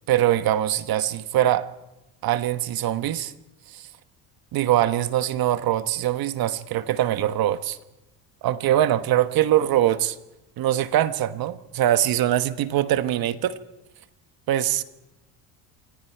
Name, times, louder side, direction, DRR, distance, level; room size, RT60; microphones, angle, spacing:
voice 1, 0.1-1.7 2.2-3.3 3.7-3.9 4.5-7.8 8.4-10.2 10.6-13.6 14.5-14.8, right 12 dB, 55° right, 1.3 m, -22 dB
27.5 x 25.0 x 4.7 m
supercardioid pair, 105°, 42 cm